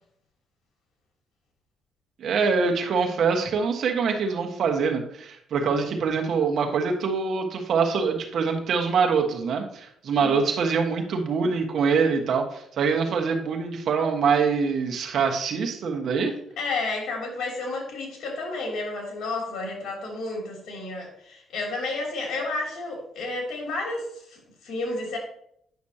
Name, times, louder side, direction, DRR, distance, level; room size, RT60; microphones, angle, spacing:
voice 1, 2.2-16.3, right 5 dB, 65° right, 3 dB, 1.4 m, -24 dB
voice 2, 16.6-25.2, left 3 dB, 70° left, 0 dB, 3.0 m, -31 dB
9.3 x 6.1 x 2.9 m, 0.69 s
cardioid pair, 90°, 0 cm